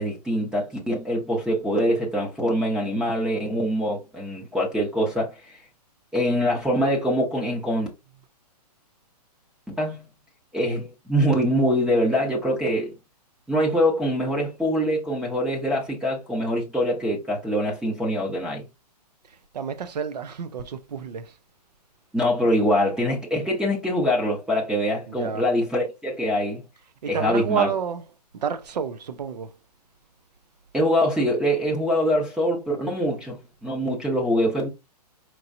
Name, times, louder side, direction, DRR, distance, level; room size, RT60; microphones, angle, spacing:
voice 1, 0.0-5.3 6.1-7.9 9.8-10.0 10.5-12.9 13.5-18.7 22.1-26.6 27.1-27.7 30.7-33.4 33.6-34.7, equal, 5° right, 0.7 m, -24 dB
voice 2, 19.5-21.3 25.1-25.4 27.0-28.0 28.3-29.5, right 7 dB, 80° right, 0.7 m, -29 dB
4.6 x 3.0 x 2.6 m
hypercardioid pair, 150°, 21 cm